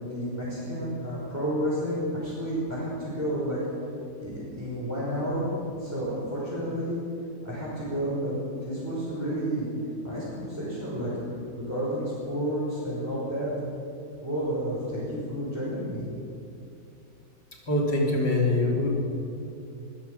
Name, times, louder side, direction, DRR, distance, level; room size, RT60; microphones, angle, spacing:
voice 1, 0.0-3.6 4.2-5.5 5.8-7.0 7.4-8.4 8.6-9.7 10.0-11.1 11.6-13.5 14.2-16.1, equal, 10° right, -9 dB, 6.0 m, -31 dB
voice 2, 17.7-18.9, left 2 dB, 85° left, -1 dB, 4.3 m, -24 dB
25.0 x 15.5 x 7.2 m, 2.6 s
omnidirectional pair, 1.8 m